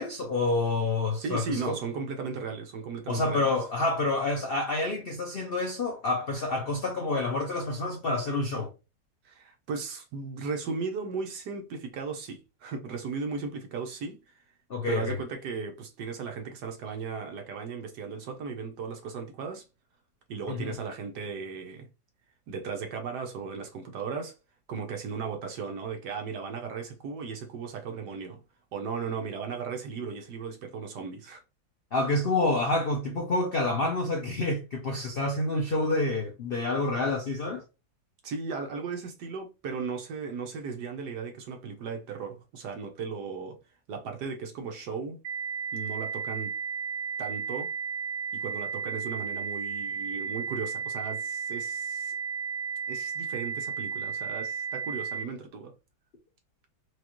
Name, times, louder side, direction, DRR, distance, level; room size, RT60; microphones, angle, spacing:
voice 1, 0.0-1.8 3.1-8.7 14.7-15.2 20.5-20.7 31.9-37.6, left 2 dB, 80° left, 0.5 m, -28 dB
voice 2, 1.2-3.5 9.2-14.4 14.9-19.6 20.3-21.9 22.5-24.3 24.7-28.4 28.7-31.4 38.2-43.6 43.9-45.2 45.7-46.5 47.2-47.7 48.3-52.1 52.9-55.7, right 5 dB, 65° right, 1.3 m, -36 dB
sound 1, 45.2-55.2, right 6 dB, 80° right, 1.4 m, -34 dB
4.7 x 2.4 x 3.0 m
omnidirectional pair, 2.0 m